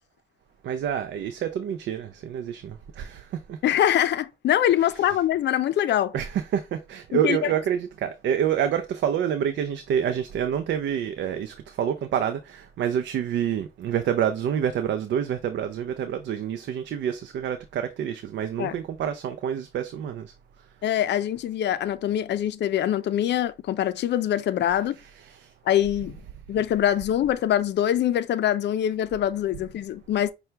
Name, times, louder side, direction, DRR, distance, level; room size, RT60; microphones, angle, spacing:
voice 1, 0.6-3.6 6.1-20.3 25.3-25.5, right 9 dB, 65° right, 0.5 m, -27 dB
voice 2, 3.6-6.1 7.1-7.5 18.6-18.7 20.8-25.0 25.7-26.1 26.5-30.3, left 11 dB, 60° left, 0.5 m, -24 dB
5.7 x 2.3 x 3.2 m
cardioid pair, 90°, 20 cm